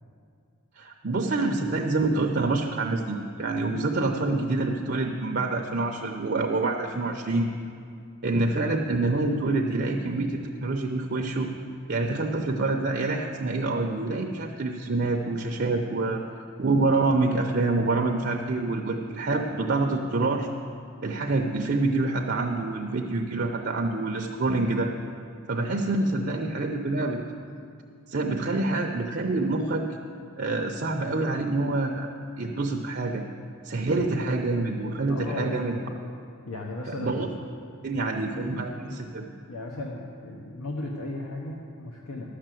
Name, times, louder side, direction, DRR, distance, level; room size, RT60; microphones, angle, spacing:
voice 1, 0.8-7.5 8.2-11.5 11.9-16.2 16.6-20.5 21.0-24.9 25.5-27.2 28.1-29.9 30.4-33.2 33.6-35.7 36.9-37.3 37.8-39.2, right 2 dB, 50° right, 2 dB, 0.6 m, -26 dB
voice 2, 35.1-36.0 36.5-37.3 38.3-42.3, left 2 dB, 80° left, -1 dB, 1.0 m, -36 dB
11.5 x 6.6 x 7.6 m, 2.4 s
head